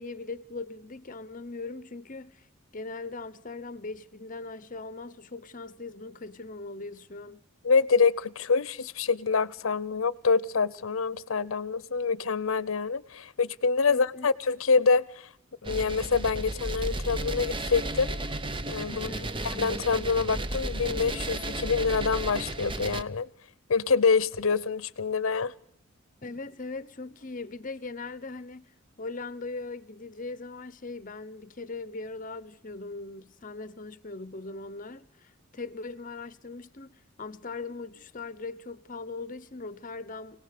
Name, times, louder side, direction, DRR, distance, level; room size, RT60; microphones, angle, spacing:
voice 1, 0.0-2.5 2.7-7.4 13.9-14.3 18.9-19.3 26.2-28.7 29.0-40.4, left 3 dB, 40° left, 0.8 m, -40 dB
voice 2, 7.6-15.3 15.6-18.1 18.7-19.1 19.4-23.3 23.7-25.5, left 5 dB, 80° left, 0.8 m, -26 dB
sound 1, 15.6-23.0, right 2 dB, 25° right, 0.8 m, -33 dB
25.5 x 18.0 x 6.7 m
head